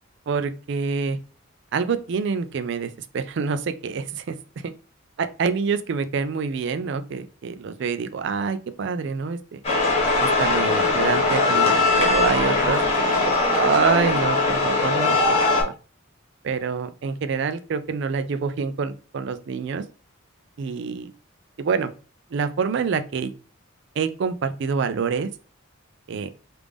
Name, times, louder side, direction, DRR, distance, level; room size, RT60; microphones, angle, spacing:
voice 1, 0.3-1.2 1.7-4.4 4.6-4.7 5.2-9.6 10.2-15.2 15.4-15.7 16.4-19.8 20.6-21.1 21.6-21.9 22.3-23.3 24.0-25.3 26.1-26.3, right 5 dB, 60° right, 10 dB, 0.4 m, -26 dB
sound 1, 9.6-15.6, left 3 dB, 30° left, 1.1 m, -20 dB
3.3 x 2.5 x 3.4 m, 0.36 s
head